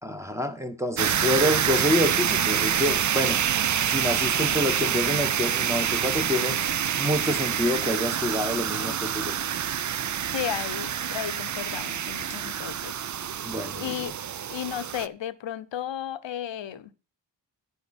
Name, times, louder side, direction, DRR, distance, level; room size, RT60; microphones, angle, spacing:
voice 1, 0.0-3.4 3.9-6.6 7.0-9.3 13.4-14.0, left 1 dB, 5° right, 1.3 m, -27 dB
sound 1, 1.0-15.1, right 9 dB, 45° right, 0.5 m, -27 dB
voice 2, 10.3-13.0 13.2-14.1 14.5-16.9, left 10 dB, 85° left, 0.8 m, -34 dB
11.5 x 8.5 x 4.3 m
cardioid pair, 75°, 44 cm